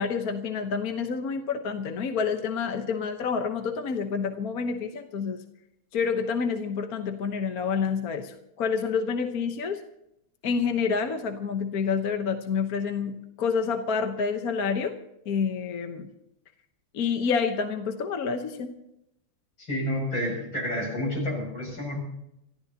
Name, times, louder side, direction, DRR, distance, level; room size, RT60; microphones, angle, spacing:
voice 1, 0.0-5.4 5.9-9.8 10.4-15.0 15.3-16.1 16.9-18.7, left 5 dB, 50° left, 6 dB, 1.4 m, -28 dB
voice 2, 19.6-22.0, left 1 dB, 70° left, 0 dB, 7.7 m, -29 dB
26.5 x 14.5 x 2.9 m, 0.81 s
omnidirectional pair, 2.2 m